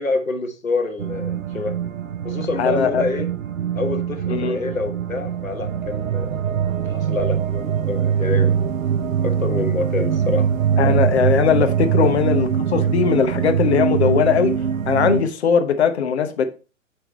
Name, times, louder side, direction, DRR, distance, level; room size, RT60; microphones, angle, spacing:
voice 1, 0.0-1.7 2.2-3.3 3.7-6.4 6.9-8.5 9.2-10.5 10.8-11.0 12.0-12.1, left 3 dB, 80° left, 1.3 m, -27 dB
sound 1, 1.0-15.2, right 8 dB, 75° right, 0.6 m, -22 dB
voice 2, 2.6-3.0 4.3-4.6 10.8-14.5 14.9-16.5, left 7 dB, 55° left, 1.0 m, -19 dB
8.6 x 3.6 x 4.2 m
figure-of-eight pair, 115°, 40 cm